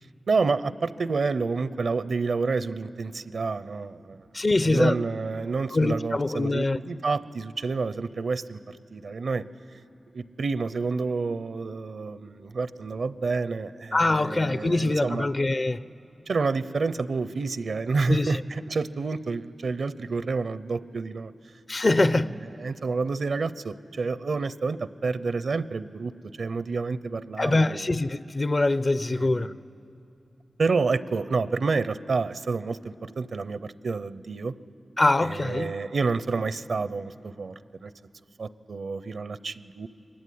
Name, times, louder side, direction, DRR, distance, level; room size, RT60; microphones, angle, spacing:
voice 1, 0.3-4.3 4.6-9.4 10.1-15.3 16.3-21.3 22.6-26.1 26.4-28.0 29.2-29.6 30.6-34.5 35.2-38.1 38.4-39.9, right 4 dB, 75° right, 0.7 m, -29 dB
voice 2, 4.3-4.9 5.7-6.8 13.9-15.8 18.1-18.3 21.7-22.3 27.4-29.5 35.0-35.7, left 2 dB, 45° left, 0.6 m, -23 dB
23.5 x 21.5 x 9.5 m
cardioid pair, 55°, 0 cm